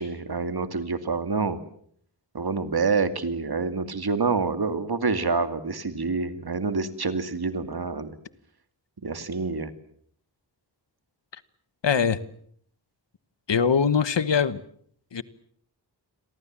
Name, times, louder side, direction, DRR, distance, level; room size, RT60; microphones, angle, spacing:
voice 1, 0.0-1.6 2.3-8.1 9.0-9.7, right 4 dB, 60° right, 10 dB, 2.5 m, -27 dB
voice 2, 11.8-12.2 13.5-14.6 15.1-15.2, left 6 dB, 80° left, 15 dB, 1.4 m, -22 dB
29.5 x 23.0 x 7.5 m, 0.64 s
wide cardioid pair, 90°, 42 cm